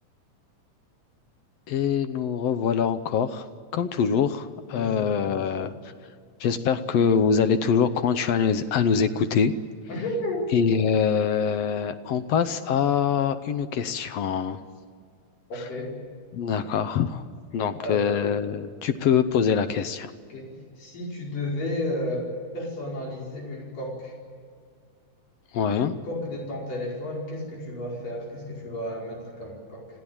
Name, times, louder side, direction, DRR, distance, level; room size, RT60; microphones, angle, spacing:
voice 1, 1.7-3.4 3.7-5.7 6.4-9.5 10.5-14.6 16.3-17.2 17.5-20.1 25.5-26.0, left 7 dB, 70° left, 11 dB, 1.7 m, -24 dB
voice 2, 4.7-5.6 9.9-10.5 15.5-15.9 17.8-18.3 20.3-20.5 20.8-24.1 25.8-29.9, left 1 dB, 85° left, -2 dB, 6.6 m, -33 dB
26.5 x 16.0 x 8.8 m, 2.1 s
omnidirectional pair, 3.7 m